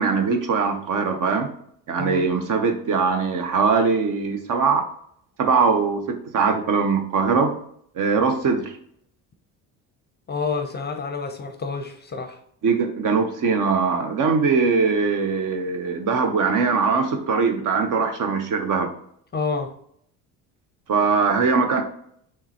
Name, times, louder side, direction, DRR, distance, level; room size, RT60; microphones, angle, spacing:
voice 1, 0.0-1.5 1.9-4.9 5.4-7.5 8.0-8.7 12.6-18.9 20.9-21.8, right 5 dB, 50° right, 0.8 m, -21 dB
voice 2, 10.3-12.4 19.3-19.7, left 4 dB, 25° left, 0.6 m, -28 dB
3.7 x 3.1 x 2.9 m
supercardioid pair, 80°, 41 cm